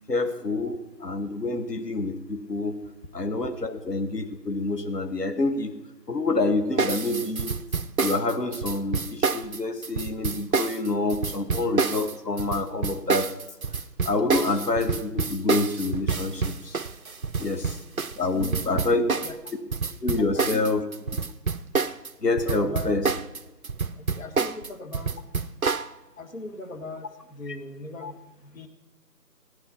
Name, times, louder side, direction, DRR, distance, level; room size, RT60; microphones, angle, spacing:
voice 1, 0.1-2.8 3.1-5.7 6.1-7.6 8.0-13.3 14.1-16.8 17.4-17.8 18.2-19.0 20.0-20.8 22.2-23.0 28.0-28.1, left 3 dB, 75° left, 6 dB, 2.0 m, -27 dB
sound 1, 6.8-22.1 22.4-25.9, right 4 dB, 60° right, 0.7 m, -28 dB
voice 2, 18.2-19.4 20.2-20.6 22.4-23.1 24.0-25.1 26.2-28.7, left 2 dB, 55° left, 5 dB, 1.8 m, -39 dB
17.5 x 10.5 x 5.7 m, 1.1 s
figure-of-eight pair, 165°, 49 cm